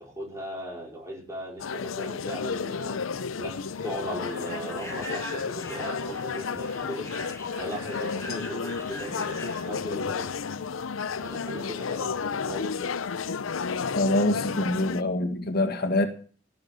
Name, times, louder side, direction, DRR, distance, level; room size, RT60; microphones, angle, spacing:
voice 1, 0.0-3.0 3.4-3.5 3.8-7.1 7.6-10.4 11.1-13.0, equal, 15° right, 4.5 m, -38 dB
sound 1, 1.6-15.0, left 5 dB, 90° left, 0.6 m, -32 dB
Human voice / Train, 2.8-11.4, equal, 10° left, 6.9 m, -42 dB
voice 2, 13.9-16.1, left 1 dB, 50° left, 1.8 m, -25 dB
15.5 x 7.1 x 8.2 m
head